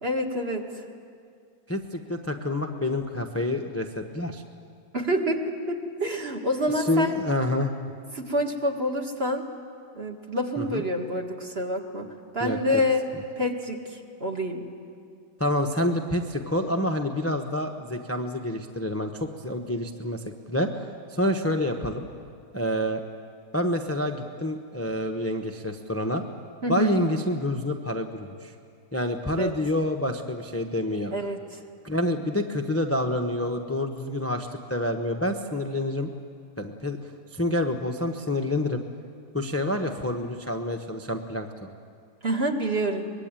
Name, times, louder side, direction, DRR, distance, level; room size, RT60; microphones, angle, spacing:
voice 1, 0.0-0.7 4.9-7.1 8.1-9.4 10.0-12.1 12.3-13.0 13.4-14.7 26.6-27.0 29.3-29.5 31.1-31.6 42.2-43.1, equal, 35° right, 3 dB, 1.9 m, -27 dB
voice 2, 1.7-4.4 6.8-7.7 10.6-10.8 12.4-12.8 15.4-20.8 21.1-22.1 22.5-23.0 23.5-26.2 26.7-28.5 28.9-31.1 31.8-36.1 36.6-37.0 37.3-38.8 39.3-41.7, left 1 dB, 10° left, 4 dB, 0.7 m, -28 dB
24.0 x 21.5 x 9.0 m, 2.3 s
omnidirectional pair, 2.0 m